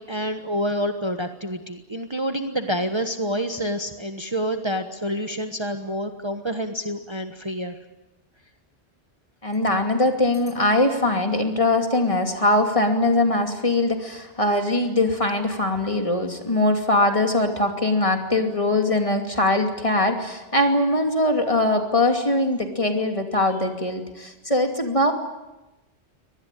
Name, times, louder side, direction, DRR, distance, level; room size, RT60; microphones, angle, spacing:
voice 1, 0.0-7.8, equal, 25° right, 6 dB, 1.3 m, -28 dB
voice 2, 9.4-25.1, left 2 dB, 30° left, 4 dB, 2.7 m, -21 dB
24.5 x 19.0 x 9.2 m, 1.0 s
omnidirectional pair, 1.2 m